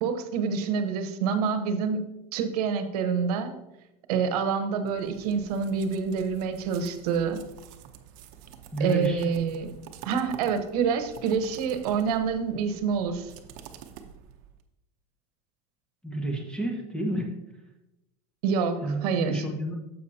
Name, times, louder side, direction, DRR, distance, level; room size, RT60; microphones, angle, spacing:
voice 1, 0.0-2.0 2.3-3.5 4.1-7.4 8.8-9.7 10.0-13.3 18.4-19.4, right 6 dB, 80° right, 8 dB, 1.1 m, -27 dB
sound 1, 4.9-14.6, right 8 dB, 60° right, 0.9 m, -47 dB
voice 2, 8.7-9.3 16.0-17.3 18.8-19.8, right 1 dB, 5° left, 1 dB, 1.4 m, -30 dB
9.6 x 7.4 x 2.8 m, 0.91 s
supercardioid pair, 145°, 20 cm